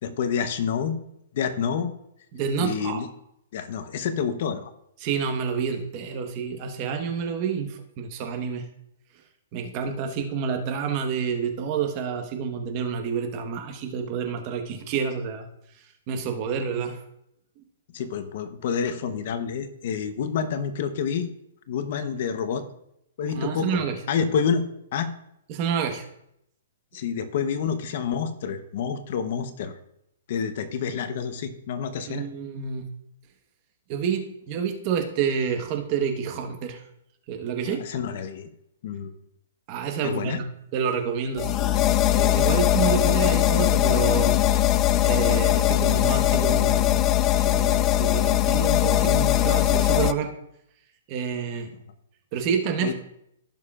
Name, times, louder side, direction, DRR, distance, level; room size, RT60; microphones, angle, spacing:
voice 1, 0.0-1.0 1.3-1.9 2.6-3.1 3.5-4.7 17.9-21.3 21.7-22.6 23.2-24.6 24.9-25.1 26.9-29.7 30.3-32.3 37.6-38.5 38.8-39.1 40.0-40.4 52.8-52.9, left 7 dB, 50° left, 9 dB, 0.9 m, -28 dB
voice 2, 2.3-3.0 5.0-8.7 9.5-15.5 16.1-17.0 23.3-23.9 25.5-26.0 32.1-32.9 33.9-36.8 37.3-37.8 39.7-41.8 42.1-44.4 44.7-50.3 51.1-51.7 52.3-52.9, right 7 dB, 35° right, 5 dB, 1.2 m, -29 dB
sound 1, 41.4-50.1, left 13 dB, 25° left, 0.4 m, -20 dB
16.0 x 6.6 x 2.5 m, 0.78 s
hypercardioid pair, 155°, 0 cm